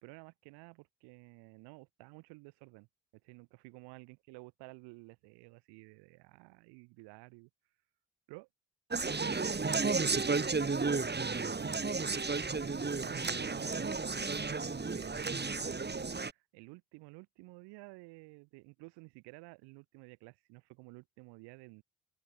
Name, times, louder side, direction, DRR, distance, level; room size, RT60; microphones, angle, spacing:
voice 1, 0.0-2.9 3.2-7.5 8.3-8.5 8.9-9.3 9.7-10.6 11.6-12.3 12.6-21.8, right 26 dB, 75° right, 3.3 m, -53 dB
Conversation, 8.9-16.3, right 4 dB, 25° right, 2.2 m, -33 dB
open air
hypercardioid pair, 40°, 41 cm